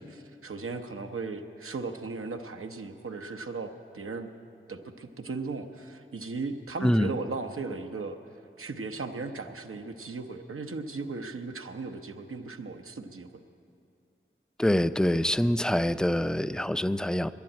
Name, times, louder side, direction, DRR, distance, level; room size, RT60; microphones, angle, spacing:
voice 1, 0.0-4.3 4.7-8.2 8.6-13.3, right 4 dB, 90° right, 5 dB, 0.8 m, -37 dB
voice 2, 14.6-17.3, left 1 dB, 5° left, 13 dB, 0.3 m, -25 dB
10.5 x 10.5 x 9.8 m, 2.5 s
wide cardioid pair, 60°, 21 cm